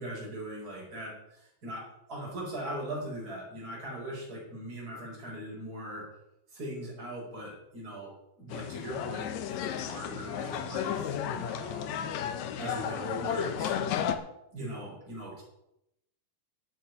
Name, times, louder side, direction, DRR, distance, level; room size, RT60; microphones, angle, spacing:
voice 1, 0.0-6.1 6.5-8.1 8.4-14.2 14.5-15.4, right 1 dB, 25° right, -3 dB, 5.4 m, -40 dB
sound 1, 8.5-14.2, left 9 dB, 70° left, 1.7 m, -33 dB
9.1 x 8.7 x 9.3 m, 0.83 s
omnidirectional pair, 4.4 m